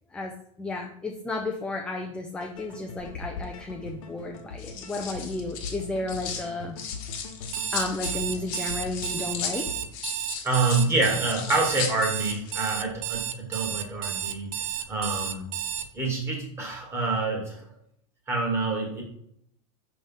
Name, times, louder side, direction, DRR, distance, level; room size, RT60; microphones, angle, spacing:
voice 1, 0.6-6.8 7.7-9.7, left 2 dB, 5° left, 2 dB, 0.4 m, -33 dB
sound 1, 2.4-9.9, left 4 dB, 75° left, 1.2 m, -41 dB
sound 2, 3.0-3.5 4.4-6.5 6.8-12.6 12.9-13.2, left 7 dB, 50° left, 1.1 m, -37 dB
Alarm, 7.4-15.9, right 11 dB, 65° right, 0.6 m, -32 dB
voice 2, 10.4-14.5 14.9-15.5 15.9-17.6 18.3-19.0, right 3 dB, 15° right, 0 dB, 1.6 m, -27 dB
5.0 x 3.4 x 5.4 m, 0.71 s
supercardioid pair, 150°, 17 cm